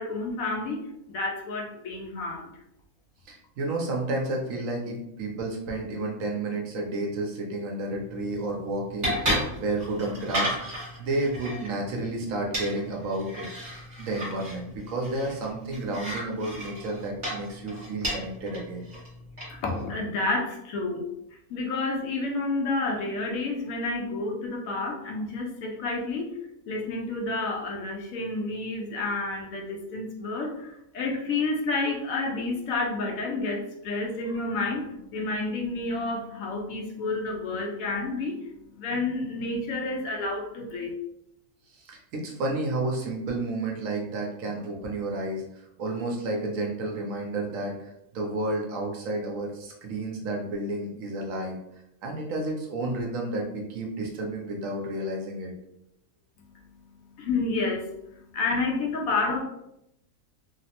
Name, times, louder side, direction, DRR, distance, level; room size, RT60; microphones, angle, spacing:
voice 1, 0.0-2.5 19.5-21.1 21.5-26.3 26.7-40.9 57.2-59.4, left 3 dB, 70° left, 1 dB, 1.0 m, -30 dB
voice 2, 3.3-13.5 14.0-18.9 41.7-45.4 45.8-51.5 52.0-55.5, right 2 dB, 70° right, 0 dB, 0.9 m, -31 dB
sound 1, 7.9-19.8, equal, 35° right, 0.9 m, -34 dB
3.1 x 2.0 x 2.8 m, 0.81 s
omnidirectional pair, 1.6 m